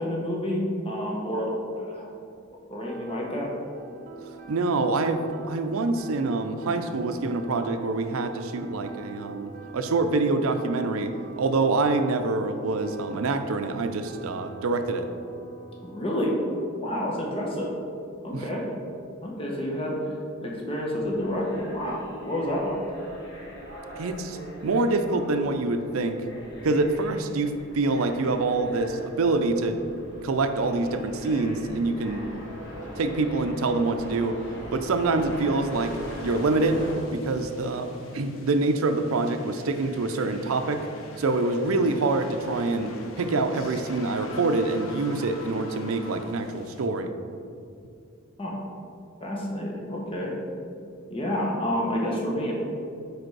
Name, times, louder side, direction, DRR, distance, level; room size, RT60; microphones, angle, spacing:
voice 1, 0.0-2.1 2.7-3.5 15.8-16.4 16.7-17.7 18.2-18.6 19.2-20.1 20.4-22.8 48.4-48.6 49.2-50.3 51.1-52.5, equal, 25° left, -2 dB, 1.0 m, -29 dB
sound 1, 2.8-17.3, right 2 dB, 40° right, 0.7 m, -44 dB
voice 2, 4.5-15.1 18.3-18.4 24.0-26.3 26.6-29.8 30.2-32.3 33.0-34.4 34.7-36.0 36.2-36.9 37.1-40.9 41.2-47.1, right 3 dB, 85° right, 8 dB, 0.5 m, -26 dB
sound 2, 21.0-36.9, equal, 55° left, 1.2 m, -41 dB
sound 3, 35.7-46.9, left 2 dB, 75° left, 0.7 m, -44 dB
5.1 x 4.6 x 4.7 m, 2.5 s
head